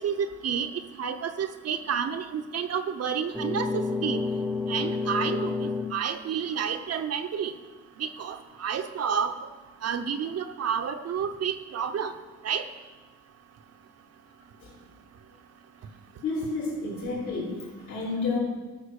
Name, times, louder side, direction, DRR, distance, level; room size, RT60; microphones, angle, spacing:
voice 1, 0.0-4.2 4.7-7.5 8.0-9.5 9.8-12.1 12.4-12.7, right 7 dB, 55° right, 8 dB, 0.8 m, -30 dB
sound 1, 3.3-6.0, left 3 dB, 5° right, 0.9 m, -29 dB
voice 2, 16.2-18.4, left 3 dB, 70° left, -7 dB, 3.8 m, -30 dB
12.0 x 5.9 x 6.5 m, 1.3 s
cardioid pair, 90°, 30 cm